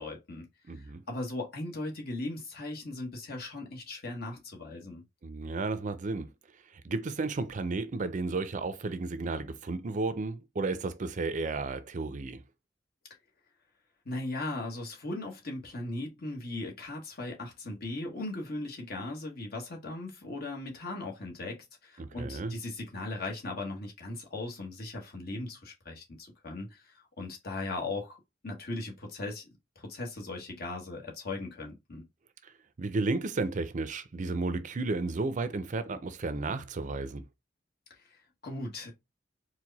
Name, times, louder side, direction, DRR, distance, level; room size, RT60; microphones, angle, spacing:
voice 1, 0.0-0.5 0.7-5.0 14.0-28.2 28.4-29.5 29.7-32.0 38.1-38.9, left 2 dB, 55° left, 1.3 m, -38 dB
voice 2, 0.6-1.0 5.2-6.3 6.7-12.4 22.0-22.5 32.4-37.2, right 3 dB, 45° right, 0.5 m, -33 dB
4.6 x 2.1 x 4.0 m
head